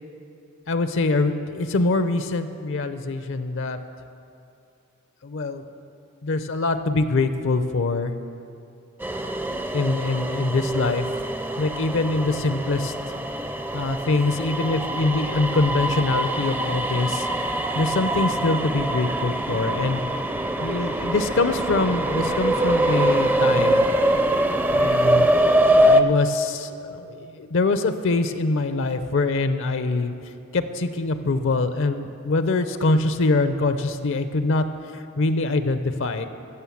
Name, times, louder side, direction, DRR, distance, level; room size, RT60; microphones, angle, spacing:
voice 1, 0.7-3.8 5.2-5.7 6.2-8.1 9.2-9.3 9.7-11.1 11.6-12.9 13.7-17.3 17.7-20.0 20.6-23.9 24.7-25.3 25.8-30.1 30.5-34.6 34.9-36.3, left 3 dB, 65° left, 10 dB, 0.6 m, -24 dB
sound 1, 9.0-26.0, right 1 dB, 10° right, 0.4 m, -23 dB
15.5 x 6.4 x 7.2 m, 2.6 s
head